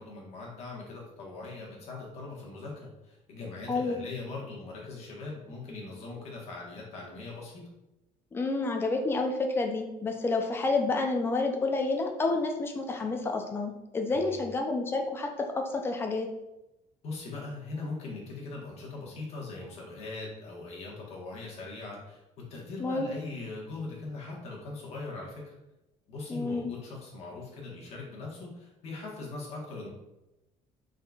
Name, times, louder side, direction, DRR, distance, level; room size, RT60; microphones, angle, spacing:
voice 1, 0.0-7.6 14.1-14.4 17.0-25.5 26.1-29.9, left 3 dB, 50° left, -3 dB, 1.3 m, -41 dB
voice 2, 3.7-4.0 8.3-16.3 22.8-23.1 26.3-26.7, left 3 dB, 15° left, 3 dB, 0.4 m, -29 dB
4.2 x 3.8 x 2.3 m, 0.95 s
cardioid pair, 170°, 14 cm